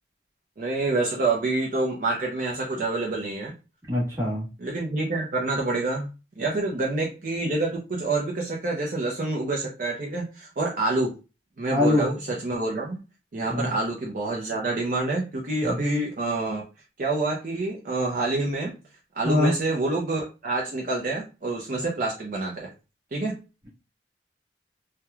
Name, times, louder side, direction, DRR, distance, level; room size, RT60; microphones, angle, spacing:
voice 1, 0.6-3.5 4.6-6.1 6.4-11.1 11.6-13.0 13.3-16.6 17.0-18.7 19.1-22.7 23.1-23.4, right 2 dB, 50° right, -2 dB, 0.5 m, -27 dB
voice 2, 3.9-4.5 11.7-12.0 13.5-13.7 15.6-15.8 19.2-19.5, left 2 dB, 15° right, -6 dB, 1.1 m, -23 dB
3.0 x 2.2 x 2.3 m, 0.30 s
head